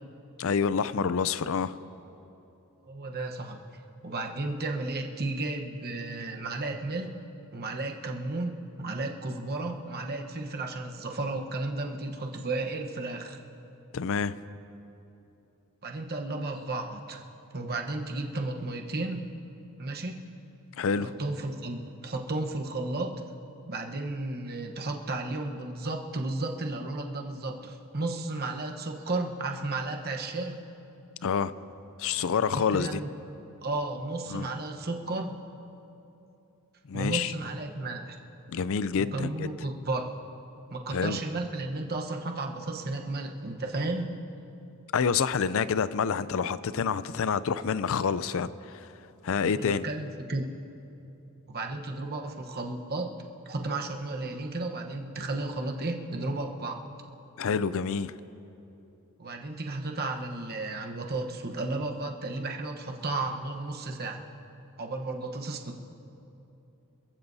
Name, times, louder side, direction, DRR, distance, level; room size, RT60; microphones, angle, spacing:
voice 1, 0.4-1.8 13.9-14.4 20.8-21.1 31.2-31.5 32.0-33.0 34.3-34.5 36.9-37.3 38.5-39.5 40.9-41.2 44.9-48.8 49.2-49.8 57.4-58.1, left 6 dB, 65° left, 15 dB, 0.5 m, -27 dB
voice 2, 2.9-3.6 4.0-7.2 7.5-13.4 15.8-17.2 17.5-19.3 19.8-20.3 21.0-23.2 23.7-30.6 32.5-33.1 33.6-35.4 36.9-38.2 39.0-40.1 40.7-44.2 49.3-50.4 51.5-53.2 53.4-56.9 59.2-64.2 64.8-65.8, right 2 dB, 45° right, 2 dB, 1.1 m, -33 dB
27.0 x 15.0 x 2.7 m, 2.9 s
head